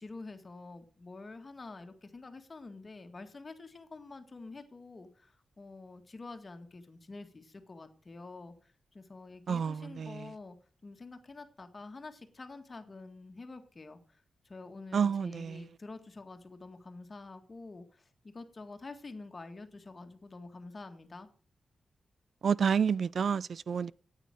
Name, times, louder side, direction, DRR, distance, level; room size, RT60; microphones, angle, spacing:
voice 1, 0.0-10.6 10.8-21.3, left 3 dB, 35° left, 1.9 m, -48 dB
voice 2, 9.5-10.1 14.9-15.6 22.4-23.9, right 6 dB, 65° right, 0.4 m, -29 dB
9.1 x 9.0 x 6.5 m
cardioid pair, 95°, 0 cm